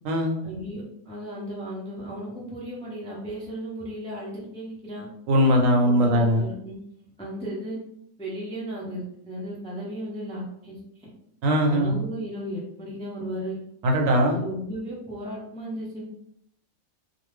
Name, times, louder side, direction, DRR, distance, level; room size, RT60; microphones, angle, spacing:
voice 1, 0.4-5.1 5.8-6.8 7.2-7.8 8.2-11.1 11.7-13.6 14.3-16.0, equal, 10° left, -6 dB, 0.3 m, -35 dB
voice 2, 5.3-6.4 11.4-11.9 13.8-14.4, equal, 75° right, 2 dB, 1.0 m, -20 dB
2.6 x 2.2 x 3.3 m, 0.73 s
omnidirectional pair, 1.4 m